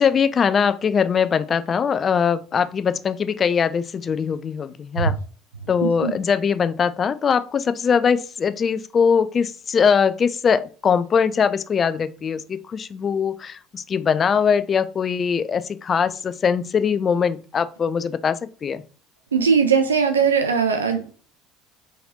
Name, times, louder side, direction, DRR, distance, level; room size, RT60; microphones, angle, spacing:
voice 1, 0.0-5.2 5.7-18.8, left 6 dB, 35° left, 13 dB, 0.4 m, -21 dB
voice 2, 5.8-6.1 19.3-21.1, right 6 dB, 85° right, 6 dB, 0.5 m, -19 dB
4.2 x 4.1 x 2.6 m, 0.39 s
figure-of-eight pair, 65°, 0 cm